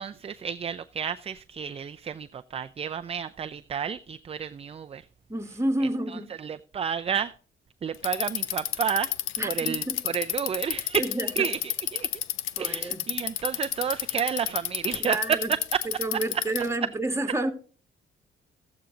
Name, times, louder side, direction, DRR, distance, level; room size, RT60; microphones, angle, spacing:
voice 1, 0.0-5.1 5.8-7.3 7.8-12.1 12.6-15.8 16.1-16.4 16.8-16.9, right 7 dB, 30° right, 0.4 m, -31 dB
voice 2, 5.3-6.3 9.4-10.0 11.0-11.4 12.6-13.0 15.0-15.5 16.0-17.5, right 2 dB, 15° right, 1.5 m, -29 dB
Bicycle, 7.9-16.8, left 12 dB, 85° left, 0.7 m, -30 dB
14.0 x 8.3 x 3.8 m
cardioid pair, 90°, 20 cm